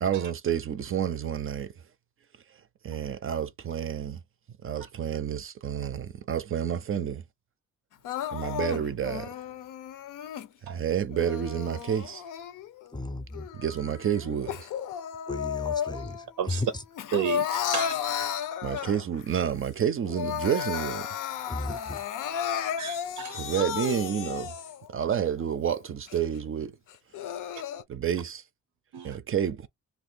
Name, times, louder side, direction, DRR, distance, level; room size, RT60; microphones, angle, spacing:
voice 1, 0.0-1.7 2.8-4.2 4.6-7.2 8.3-9.4 10.6-12.2 13.5-14.7 18.6-21.1 23.3-24.5 24.9-26.8 27.9-28.4 29.0-29.7, right 9 dB, 45° right, 0.4 m, -29 dB
Crying sobbing, 8.0-10.5 11.1-12.9 13.3-16.3 16.6-19.2 19.7-19.8 20.0-24.9 25.4-25.5 26.1-26.2 26.9-27.8, left 9 dB, 85° left, 0.5 m, -33 dB
voice 2, 12.9-13.5 15.3-16.8 18.2-18.3 21.5-22.0, left 2 dB, 15° left, 0.5 m, -34 dB
voice 3, 17.1-18.0 22.8-23.4 28.9-29.1, right 9 dB, 90° right, 0.6 m, -32 dB
2.5 x 2.3 x 3.8 m
cardioid pair, 115°, 31 cm